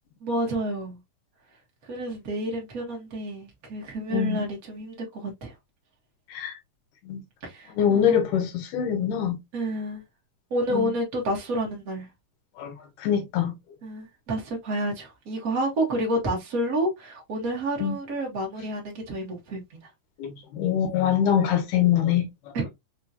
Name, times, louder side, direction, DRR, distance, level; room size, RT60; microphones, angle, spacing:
voice 1, 0.2-1.0 1.9-5.5 7.4-8.2 9.5-10.0 10.5-12.1 13.8-19.6 22.5-22.7, right 1 dB, 60° right, 0.9 m, -29 dB
voice 2, 4.1-4.4 6.3-6.5 7.1-7.2 7.7-9.4 10.7-10.9 12.6-13.5 17.8-18.0 20.2-22.3, left 9 dB, 80° left, 2.6 m, -24 dB
5.4 x 2.8 x 2.3 m
omnidirectional pair, 3.7 m